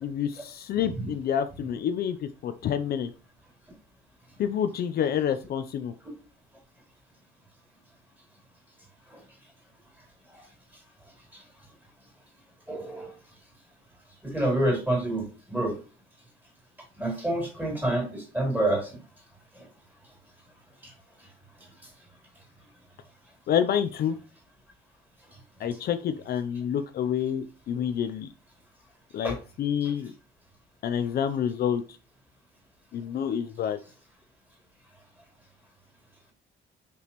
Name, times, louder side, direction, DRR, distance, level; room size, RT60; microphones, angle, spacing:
voice 1, 0.0-3.1 4.4-5.9 23.5-24.2 25.6-28.3 29.1-30.1 30.8-31.8 32.9-33.8, left 9 dB, 50° left, 9 dB, 0.5 m, -28 dB
voice 2, 12.7-13.1 14.2-15.8 17.0-18.9 19.5-19.6 20.8-20.9 29.2-29.4 29.8-29.9, right 1 dB, 10° right, 0 dB, 3.3 m, -28 dB
6.2 x 5.8 x 3.0 m, 0.34 s
cardioid pair, 175°, 20 cm